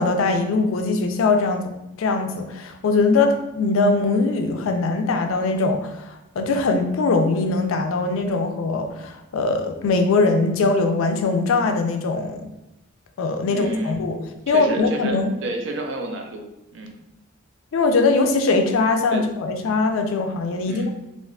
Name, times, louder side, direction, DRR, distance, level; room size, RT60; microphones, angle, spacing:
voice 1, 0.0-1.6 2.0-12.5 13.2-14.2 14.5-15.3 17.7-21.0, left 3 dB, 80° left, 5 dB, 0.4 m, -21 dB
voice 2, 13.4-14.0 14.5-16.5 16.7-17.0 19.1-19.2 20.7-20.9, right 1 dB, 65° right, 3 dB, 0.5 m, -30 dB
3.5 x 2.4 x 2.3 m, 0.94 s
head